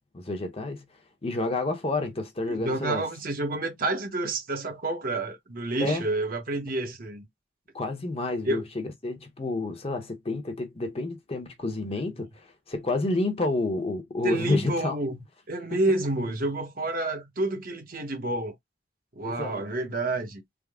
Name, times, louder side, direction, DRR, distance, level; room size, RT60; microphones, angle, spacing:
voice 1, 0.1-0.8 1.2-3.1 5.8-6.0 7.7-15.0 19.2-19.6, left 2 dB, 30° left, 0.8 m, -29 dB
voice 2, 2.5-7.3 8.5-8.6 14.2-15.2 15.5-18.5 19.1-20.4, right 2 dB, 50° right, 0.9 m, -29 dB
3.6 x 2.0 x 3.5 m
head